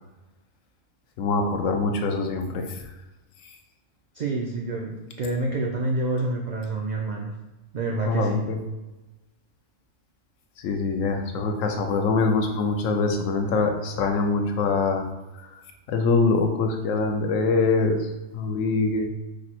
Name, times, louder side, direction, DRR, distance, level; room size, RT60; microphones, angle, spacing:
voice 1, 1.2-2.8 7.9-8.6 10.6-15.1 15.4-15.5 15.9-18.0 18.3-19.1, left 3 dB, 90° left, 3 dB, 1.0 m, -24 dB
voice 2, 4.1-7.3 7.7-8.4, right 2 dB, 80° right, -1 dB, 0.4 m, -28 dB
4.9 x 2.0 x 4.3 m, 1.0 s
omnidirectional pair, 1.3 m